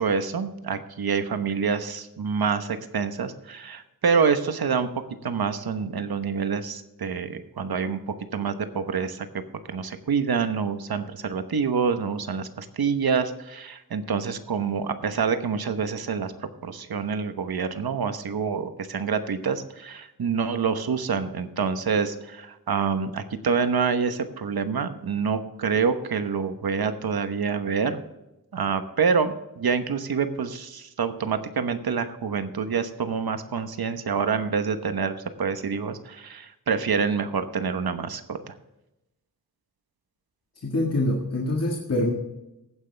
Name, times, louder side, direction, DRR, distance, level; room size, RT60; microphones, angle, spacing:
voice 1, 0.0-4.9 5.2-8.0 8.3-9.3 9.7-16.3 16.6-28.0 28.5-38.5, right 6 dB, 85° right, 9 dB, 1.1 m, -27 dB
voice 2, 40.6-42.1, left 1 dB, 45° left, -1 dB, 1.7 m, -25 dB
15.5 x 9.5 x 3.3 m, 0.93 s
wide cardioid pair, 115°, 36 cm